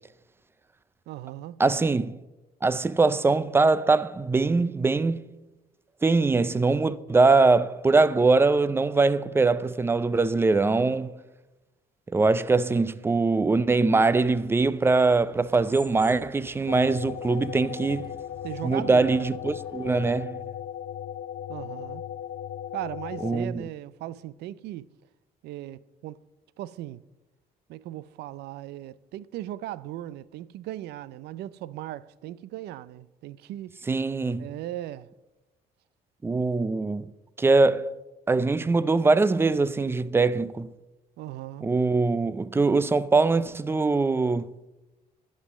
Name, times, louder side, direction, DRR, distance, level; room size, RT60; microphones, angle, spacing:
voice 1, 1.1-1.6 18.4-19.1 21.5-22.0 22.7-24.9 25.4-26.2 26.6-27.0 27.7-33.8 34.4-35.1 41.2-41.7, right 14 dB, 75° right, 0.4 m, -37 dB
voice 2, 1.6-2.2 2.6-5.2 6.0-11.2 12.1-18.1 18.6-20.4 23.2-23.6 33.9-34.5 36.2-37.0 37.4-37.9 38.3-40.7 41.6-44.5, right 3 dB, 15° right, 0.4 m, -22 dB
sound 1, 13.9-20.2, left 2 dB, 5° left, 1.7 m, -52 dB
sound 2, 16.7-23.4, left 10 dB, 55° left, 0.4 m, -37 dB
11.5 x 5.5 x 7.2 m
cardioid pair, 110°, 17 cm